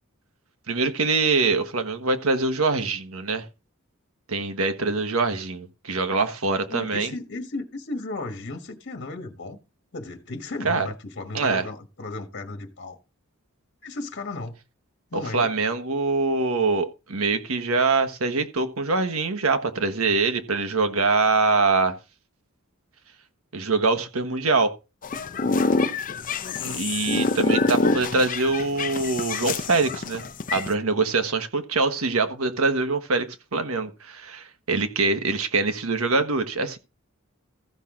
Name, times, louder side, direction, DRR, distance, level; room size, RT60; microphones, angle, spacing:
voice 1, 0.7-3.4 4.3-7.1 10.6-10.9 11.3-11.6 15.1-21.9 23.5-24.7 26.7-30.2 30.5-33.3 33.5-36.8, right 3 dB, 90° right, 1.3 m, -24 dB
voice 2, 6.7-9.6 9.9-13.0 13.8-14.6 15.1-15.5 26.6-26.9, left 2 dB, 55° left, 1.4 m, -35 dB
sound 1, 25.0-30.7, left 3 dB, 40° left, 0.7 m, -26 dB
14.5 x 5.9 x 3.8 m
head